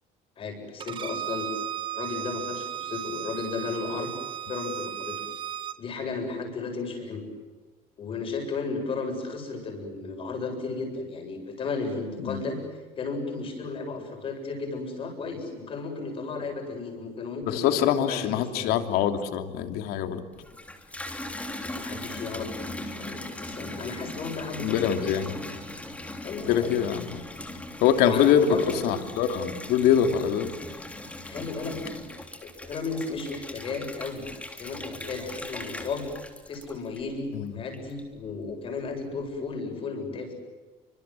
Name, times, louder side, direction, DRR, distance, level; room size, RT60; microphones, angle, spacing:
voice 1, 0.4-1.5 1.9-4.1 4.5-5.2 5.8-7.2 8.0-12.6 13.0-18.8 21.8-22.5 22.8-25.4 26.2-26.7 28.0-28.8 31.2-32.1 32.4-34.3 34.6-36.1 36.5-40.3, left 4 dB, 35° left, 4 dB, 8.0 m, -34 dB
Bowed string instrument, 0.8-5.8, right 10 dB, 30° right, 1.3 m, -35 dB
voice 2, 17.4-20.2 24.6-25.3 26.5-27.2 27.8-30.5 37.3-37.5, left 9 dB, 75° left, 7 dB, 2.9 m, -24 dB
Water tap faucet / Bathtub (filling or washing), 20.3-37.3 37.7-38.3, left 1 dB, 10° left, 3.2 m, -39 dB
30.0 x 25.5 x 7.7 m, 1.3 s
cardioid pair, 160°, 16 cm